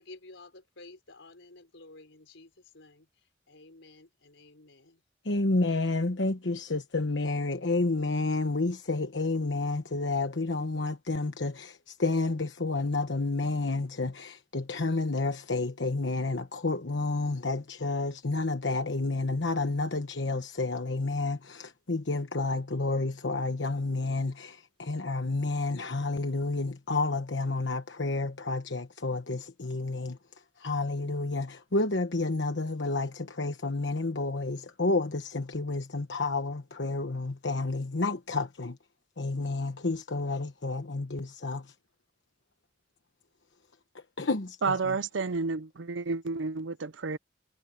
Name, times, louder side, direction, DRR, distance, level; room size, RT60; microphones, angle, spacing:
voice 1, 0.0-3.1 3.5-5.0, left 2 dB, 85° left, 4.3 m, -52 dB
voice 2, 5.2-30.2 30.6-38.8 39.2-41.7 44.2-45.0, left 3 dB, 70° left, 1.1 m, -30 dB
voice 3, 44.6-47.2, right 4 dB, 75° right, 0.6 m, -30 dB
head